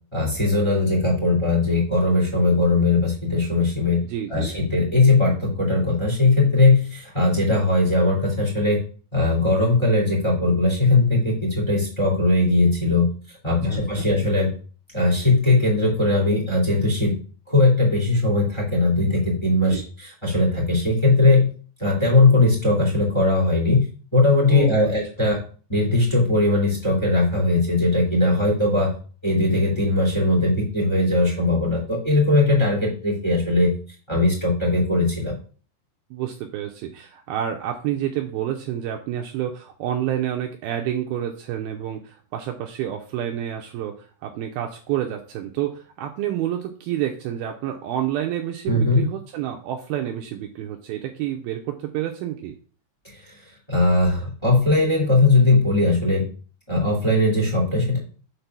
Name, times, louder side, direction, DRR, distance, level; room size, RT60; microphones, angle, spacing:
voice 1, 0.1-4.0 4.3-8.8 9.1-14.5 14.9-17.2 17.5-21.5 21.8-23.8 24.1-25.4 25.7-28.9 29.2-33.7 34.1-35.4 48.7-49.0 53.0-53.3 53.7-56.3 56.7-58.0, left 2 dB, 10° left, -1 dB, 1.5 m, -19 dB
voice 2, 4.0-4.6 13.5-14.1 19.7-19.8 24.5-24.9 36.1-52.6, right 11 dB, 85° right, 3 dB, 2.2 m, -29 dB
6.7 x 4.1 x 5.9 m, 0.41 s
omnidirectional pair, 5.0 m